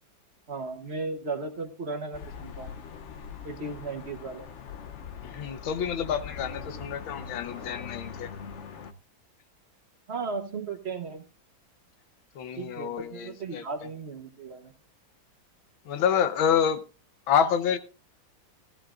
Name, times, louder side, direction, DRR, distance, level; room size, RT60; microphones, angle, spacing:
voice 1, 0.5-2.7 3.4-4.5 10.1-11.2 12.6-14.7, right 4 dB, 40° right, 1.2 m, -35 dB
sound 1, 2.1-8.9, left 6 dB, 60° left, 0.7 m, -42 dB
voice 2, 5.2-8.3 12.4-13.7 15.9-16.8 17.3-17.8, left 8 dB, 90° left, 1.8 m, -27 dB
15.5 x 14.5 x 2.5 m
omnidirectional pair, 2.1 m